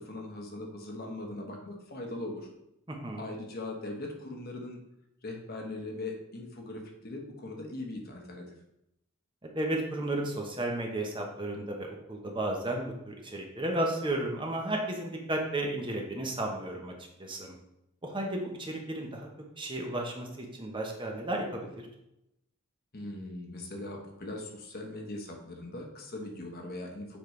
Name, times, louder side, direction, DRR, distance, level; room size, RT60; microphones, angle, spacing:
voice 1, 0.0-2.5 3.1-4.8 5.2-8.6 22.9-27.2, left 2 dB, 45° left, 1 dB, 1.2 m, -40 dB
voice 2, 2.9-3.2 9.4-16.9 17.2-17.6 18.0-19.3 19.6-21.9, right 1 dB, 20° right, 1 dB, 0.9 m, -33 dB
7.2 x 5.2 x 3.2 m, 0.84 s
head